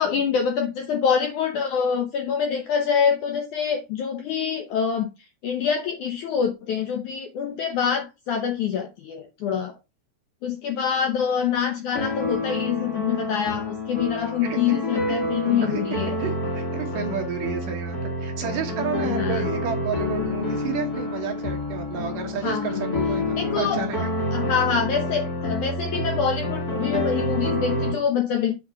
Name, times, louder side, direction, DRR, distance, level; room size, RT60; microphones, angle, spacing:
voice 1, 0.0-5.1 5.4-9.8 10.4-16.2 19.0-19.5 22.4-22.7 23.3-24.0 24.3-28.5, left 7 dB, 75° left, 1.8 m, -25 dB
sound 1, 11.9-27.9, left 2 dB, 40° left, 1.4 m, -28 dB
voice 2, 15.5-24.1, right 7 dB, 65° right, 2.5 m, -31 dB
8.4 x 3.9 x 5.4 m
omnidirectional pair, 4.7 m